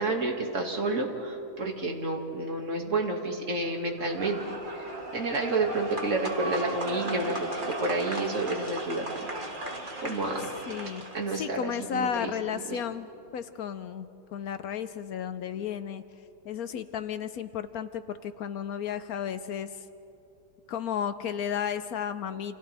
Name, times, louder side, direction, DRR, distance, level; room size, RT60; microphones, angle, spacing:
voice 1, 0.0-4.4 4.7-9.3 10.0-10.5 11.1-12.3 12.7-12.8, right 2 dB, 40° right, 1 dB, 2.3 m, -30 dB
sound 1, 4.0-11.4, right 2 dB, 25° right, 1.9 m, -36 dB
voice 2, 10.7-16.0 16.4-19.8 20.7-22.6, left 8 dB, 70° left, 11 dB, 0.9 m, -33 dB
30.0 x 27.0 x 3.4 m, 2.8 s
omnidirectional pair, 2.0 m